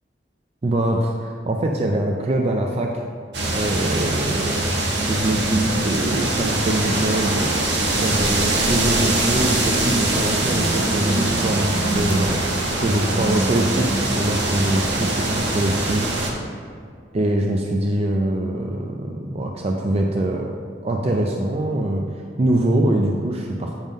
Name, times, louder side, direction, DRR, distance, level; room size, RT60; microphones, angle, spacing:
voice 1, 0.6-2.9 3.5-4.8 5.1-7.5 7.9-16.1 17.1-20.5 20.8-23.8, right 1 dB, 35° right, 1 dB, 0.4 m, -23 dB
sound 1, 3.3-16.3, right 2 dB, 75° right, 1.1 m, -22 dB
8.9 x 3.7 x 5.1 m, 2.1 s
head